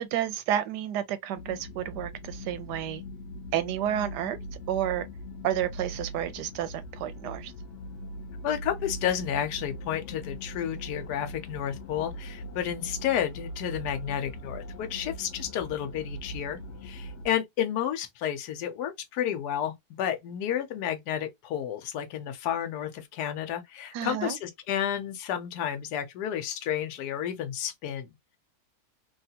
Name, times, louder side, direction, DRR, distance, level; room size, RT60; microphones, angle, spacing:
voice 1, 0.0-3.0 3.5-4.4 4.7-5.1 5.4-7.5 23.9-24.4, right 11 dB, 90° right, 1.2 m, -30 dB
sound 1, 1.4-17.3, equal, 60° left, 0.8 m, -41 dB
voice 2, 8.4-28.1, left 10 dB, 80° left, 1.2 m, -31 dB
3.4 x 2.3 x 2.7 m
omnidirectional pair, 1.7 m